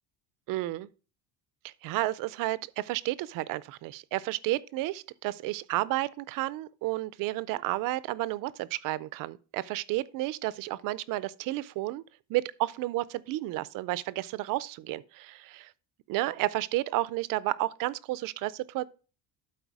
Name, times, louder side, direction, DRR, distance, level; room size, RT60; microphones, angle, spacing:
voice 1, 0.5-0.9 1.8-12.0 12.3-15.7 16.1-18.9, right 17 dB, 55° right, 0.5 m, -31 dB
12.0 x 4.4 x 4.7 m
cardioid pair, 175°, 39 cm